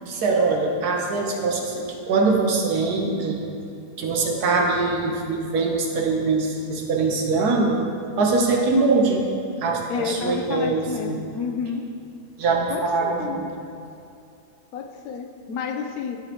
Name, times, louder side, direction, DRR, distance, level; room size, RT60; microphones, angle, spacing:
voice 1, 0.0-3.4 4.0-7.8 8.2-9.2 9.6-11.2 12.4-13.5, right 3 dB, 80° right, 0 dB, 1.5 m, -22 dB
voice 2, 9.9-11.9 12.7-13.5 14.7-16.2, left 5 dB, 75° left, 5 dB, 1.1 m, -30 dB
13.5 x 5.1 x 2.9 m, 2.7 s
omnidirectional pair, 1.6 m